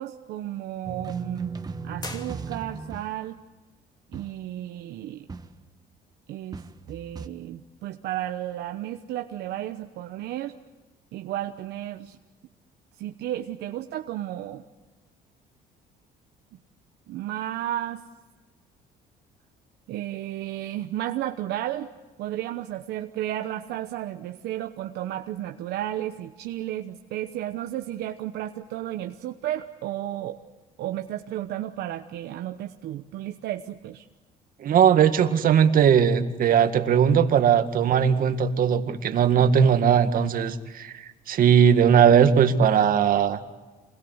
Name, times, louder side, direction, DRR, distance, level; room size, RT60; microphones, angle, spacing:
voice 1, 0.0-1.5 1.8-3.4 4.1-5.3 6.3-6.6 6.9-10.6 11.1-12.2 13.0-14.6 17.1-18.1 19.9-21.9 22.2-30.4 30.8-34.0, right 13 dB, 80° right, 6 dB, 1.1 m, -33 dB
sound 1, 0.8-3.3 4.1-4.5 5.3-5.8 6.5-7.3, right 4 dB, 25° right, 1.3 m, -37 dB
sound 2, 2.0-3.0, left 2 dB, 25° left, 2.7 m, -41 dB
voice 2, 34.6-43.4, right 8 dB, 55° right, 8 dB, 2.0 m, -19 dB
27.5 x 21.5 x 8.1 m, 1.2 s
cardioid pair, 110°, 17 cm